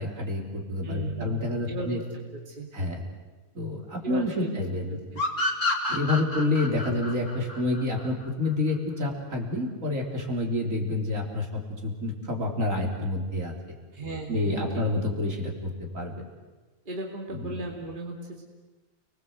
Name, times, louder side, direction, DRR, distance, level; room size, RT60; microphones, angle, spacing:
voice 1, 0.0-2.0 2.7-3.0 3.5-5.0 5.9-13.8 14.3-16.3 17.4-17.5, left 2 dB, 60° right, 0 dB, 4.1 m, -28 dB
voice 2, 0.8-2.0 2.3-2.7 4.0-4.5 4.9-5.2 6.8-6.9 13.9-14.7 16.9-18.4, right 2 dB, 35° right, 0 dB, 2.7 m, -36 dB
sound 1, 5.2-8.5, left 2 dB, 55° left, 2.9 m, -29 dB
29.5 x 20.5 x 8.0 m, 1.3 s
omnidirectional pair, 1.6 m